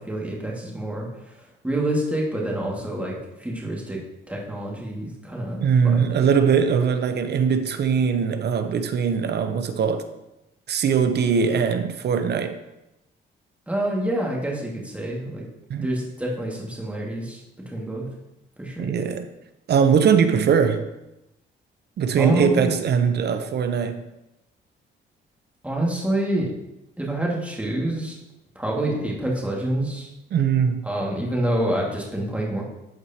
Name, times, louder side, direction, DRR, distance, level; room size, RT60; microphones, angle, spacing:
voice 1, 0.0-4.0 4.3-6.1 13.7-15.4 15.8-18.1 18.6-18.9 22.2-22.7 25.6-26.5 27.0-28.2 28.6-30.1 30.8-32.6, right 1 dB, 5° right, 2.0 m, -27 dB
voice 2, 5.6-10.1 10.7-12.6 15.7-15.9 18.8-19.3 19.7-20.9 22.0-24.0 30.3-30.9, right 6 dB, 60° right, 0.7 m, -21 dB
12.5 x 4.6 x 2.9 m
cardioid pair, 90°, 20 cm